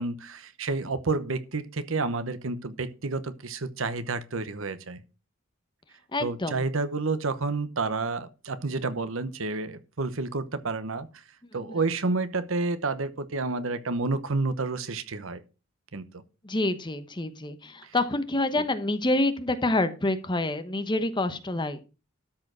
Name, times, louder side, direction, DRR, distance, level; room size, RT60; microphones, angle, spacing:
voice 1, 0.0-5.0 6.2-11.1 11.5-15.4 15.9-16.1 17.8-17.9 18.5-18.6, right 3 dB, 70° right, 1.0 m, -30 dB
voice 2, 6.1-6.6 16.4-21.8, left 2 dB, 20° left, 1.0 m, -27 dB
13.0 x 4.8 x 6.2 m
head